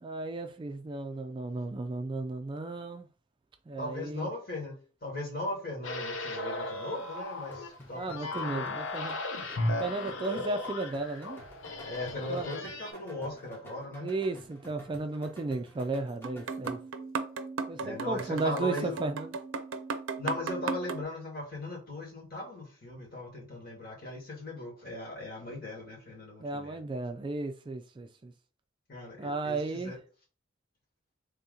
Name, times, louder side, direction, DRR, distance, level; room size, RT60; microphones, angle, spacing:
voice 1, 0.0-3.1 3.7-4.3 8.0-9.2 9.8-11.4 12.3-12.5 14.0-16.8 17.7-19.3 26.4-28.3 29.2-30.0, right 3 dB, 25° right, 0.3 m, -34 dB
voice 2, 3.8-4.7 5.0-8.7 10.3-10.4 11.8-14.1 17.8-19.0 20.2-26.8 28.9-30.0, left 2 dB, 50° left, 1.7 m, -38 dB
sound 1, 5.8-12.9, left 2 dB, 85° left, 0.7 m, -36 dB
sound 2, 7.5-17.0, equal, 10° left, 0.8 m, -52 dB
sound 3, 16.2-21.0, right 4 dB, 80° right, 0.5 m, -36 dB
3.4 x 2.8 x 3.7 m
head